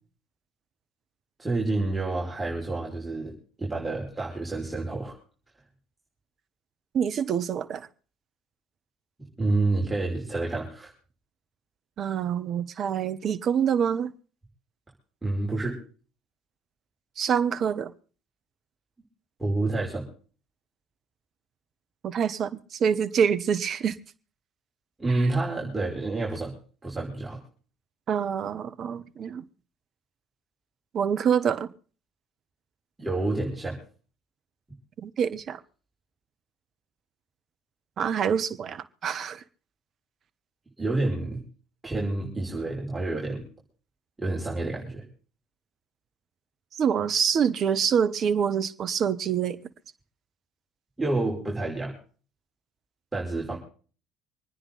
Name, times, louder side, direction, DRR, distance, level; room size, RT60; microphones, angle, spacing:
voice 1, 1.4-3.3 3.6-5.1 9.2-10.9 15.2-15.8 19.4-20.1 25.0-26.6 26.8-27.4 33.0-33.8 40.8-41.4 41.8-43.5 44.2-45.0 51.0-52.0 53.1-53.6, right 2 dB, 15° right, 5.6 m, -28 dB
voice 2, 6.9-7.9 12.0-14.1 17.2-17.9 22.0-24.0 28.1-29.4 30.9-31.7 35.0-35.6 38.0-39.4 46.7-49.6, right 7 dB, 50° right, 1.2 m, -26 dB
26.0 x 10.0 x 4.0 m
hypercardioid pair, 65°, 0 cm